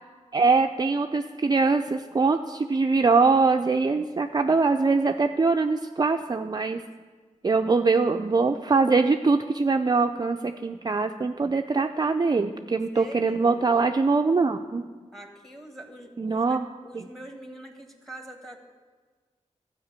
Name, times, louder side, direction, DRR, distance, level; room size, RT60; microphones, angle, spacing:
voice 1, 0.3-6.8 7.4-14.8 16.2-16.6 16.9-17.1, right 4 dB, 35° right, 5 dB, 0.4 m, -23 dB
voice 2, 12.9-13.9 15.1-16.5 16.8-18.6, right 1 dB, 5° left, 5 dB, 1.6 m, -44 dB
12.5 x 5.0 x 8.1 m, 1.4 s
wide cardioid pair, 70°, 13 cm